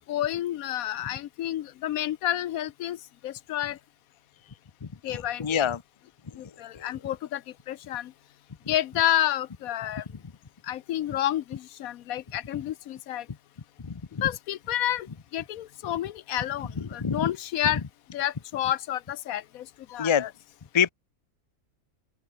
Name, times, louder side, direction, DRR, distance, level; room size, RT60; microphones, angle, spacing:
voice 1, 0.0-3.0 3.2-3.8 5.0-5.7 6.4-7.4 7.7-8.1 8.7-10.0 10.7-13.2 14.2-15.1 15.3-17.8 18.1-20.3, left 12 dB, 80° left, 1.1 m, -30 dB
voice 2, 5.1-5.8 13.8-13.9 17.0-17.3 20.0-20.3 20.7-20.9, left 7 dB, 30° left, 0.6 m, -25 dB
open air
omnidirectional pair, 1.5 m